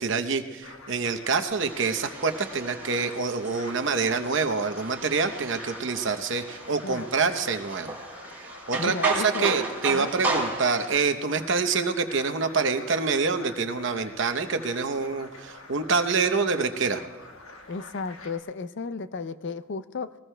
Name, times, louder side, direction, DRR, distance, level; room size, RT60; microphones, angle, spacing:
voice 1, 0.0-7.9 8.4-17.0, right 4 dB, 60° right, 8 dB, 0.8 m, -26 dB
sound 1, 0.6-18.4, left 3 dB, 75° left, 1.4 m, -46 dB
sound 2, 1.5-11.0, right 2 dB, 10° right, 3.1 m, -34 dB
voice 2, 8.8-9.5 9.9-10.1 17.7-20.1, left 4 dB, 55° left, 12 dB, 0.5 m, -34 dB
22.0 x 19.0 x 2.2 m, 1.3 s
head